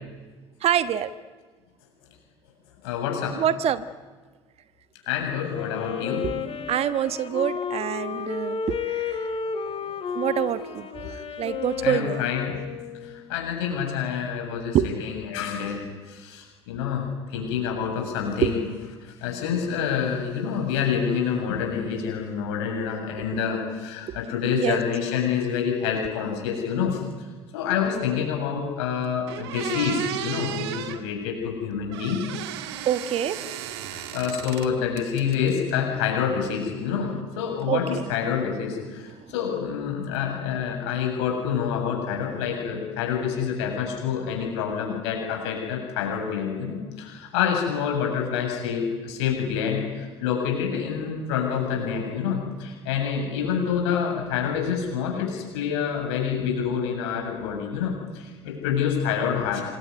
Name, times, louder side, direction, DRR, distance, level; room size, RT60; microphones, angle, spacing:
voice 1, 0.6-1.1 3.3-3.8 6.7-9.3 10.1-12.3 14.7-15.0 18.4-18.5 24.5-24.8 32.6-34.1 37.7-38.1 39.2-39.3, right 10 dB, 45° right, 13 dB, 1.3 m, -26 dB
voice 2, 2.8-3.4 5.1-6.3 9.4-10.1 11.0-11.1 11.8-12.6 13.0-18.6 19.2-27.0 27.5-32.2 33.9-59.6, left 7 dB, 65° left, 2 dB, 7.3 m, -27 dB
Wind instrument woodwind instrument, 5.5-13.2, left 6 dB, 40° left, 3.2 m, -32 dB
sound 1, 28.8-28.9 29.3-31.0 31.9-34.7 35.0-35.7, right 11 dB, 70° right, 2.0 m, -34 dB
26.5 x 21.5 x 9.6 m, 1.4 s
figure-of-eight pair, 60°, 15 cm